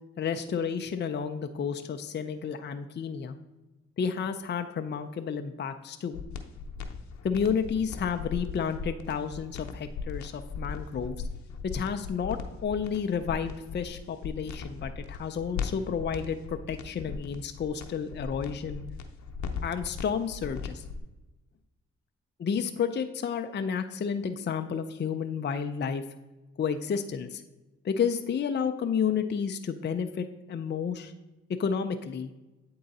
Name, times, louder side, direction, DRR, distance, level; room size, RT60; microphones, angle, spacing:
voice 1, 0.2-3.4 4.0-6.2 7.2-11.2 11.7-18.8 19.6-20.8 22.4-26.0 26.6-27.4 27.8-31.1 31.5-32.3, left 6 dB, 40° left, 7 dB, 0.5 m, -31 dB
sound 1, 6.1-21.0, left 5 dB, 70° left, 0.8 m, -38 dB
8.6 x 3.8 x 4.1 m, 1.1 s
supercardioid pair, 55°, 29 cm